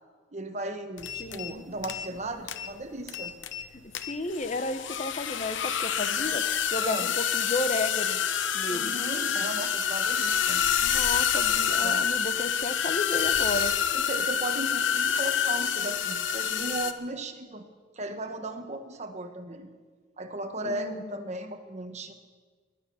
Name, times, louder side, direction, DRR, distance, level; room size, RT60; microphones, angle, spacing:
voice 1, 0.3-3.3 6.0-6.2 6.8-7.1 8.7-10.6 11.8-12.0 13.9-17.7 17.9-19.7 20.2-22.1, right 1 dB, 35° right, 7 dB, 1.2 m, -36 dB
sound 1, 1.0-1.5 1.8-2.2 2.5-2.7 3.1-3.7 3.9-16.9, left 8 dB, 80° left, 0.8 m, -27 dB
voice 2, 1.2-1.6 3.7-6.4 6.7-8.2 8.5-8.9 10.8-13.7 20.6-21.1, left 2 dB, 35° left, 10 dB, 0.9 m, -33 dB
19.5 x 9.6 x 7.1 m, 1.5 s
head